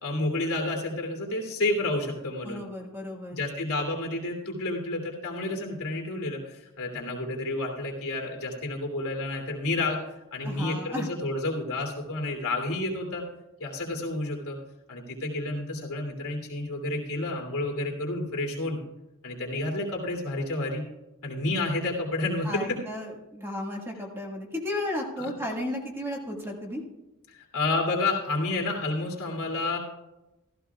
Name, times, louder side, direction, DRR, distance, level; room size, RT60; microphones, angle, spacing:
voice 1, 0.0-2.6 3.3-10.0 10.3-13.3 13.6-14.6 14.9-18.8 19.2-20.8 21.2-22.8 25.2-25.4 27.3-29.8, left 2 dB, 75° left, 0 dB, 2.7 m, -30 dB
voice 2, 2.4-3.4 10.4-11.1 22.4-26.8, left 1 dB, 10° right, 0 dB, 1.7 m, -34 dB
15.0 x 13.5 x 2.4 m, 0.97 s
head